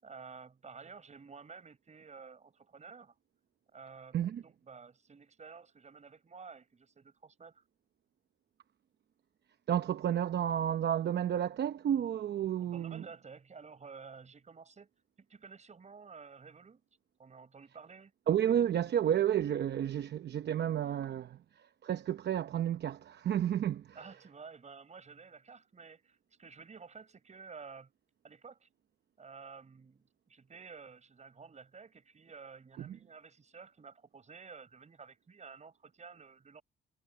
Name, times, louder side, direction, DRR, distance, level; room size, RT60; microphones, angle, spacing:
voice 1, 0.0-3.2 3.7-7.6 12.6-14.9 15.2-16.8 17.2-18.1 24.0-27.9 28.2-28.7 29.2-30.0 30.3-36.6, right 5 dB, 35° right, 5.4 m, -52 dB
voice 2, 9.7-13.0 18.3-21.4 21.8-24.0 32.8-33.0, right 10 dB, 60° right, 0.9 m, -31 dB
cardioid pair, 90°, 20 cm